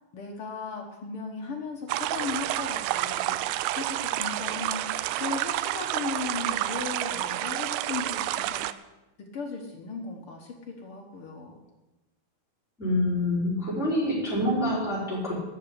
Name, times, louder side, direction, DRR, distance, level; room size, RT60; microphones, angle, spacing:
voice 1, 0.1-8.6 9.2-11.6, left 4 dB, 80° left, 1 dB, 1.2 m, -37 dB
sound 1, 1.9-8.7, right 14 dB, 85° right, 2.7 m, -29 dB
voice 2, 12.8-15.3, left 1 dB, ahead, -8 dB, 4.9 m, -26 dB
13.0 x 6.5 x 10.0 m, 1.1 s
omnidirectional pair, 4.6 m